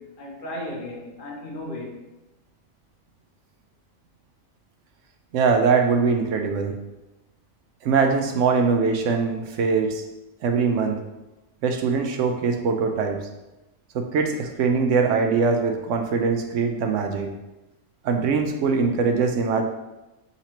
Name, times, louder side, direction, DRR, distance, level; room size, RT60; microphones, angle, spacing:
voice 1, 0.0-2.1, left 1 dB, 45° left, 0 dB, 0.8 m, -35 dB
voice 2, 5.3-6.7 7.8-10.0 10.4-11.0 11.6-13.2 13.9-17.3 18.0-19.6, right 5 dB, 70° right, 4 dB, 0.9 m, -22 dB
4.2 x 4.0 x 3.0 m, 1.0 s
omnidirectional pair, 1.3 m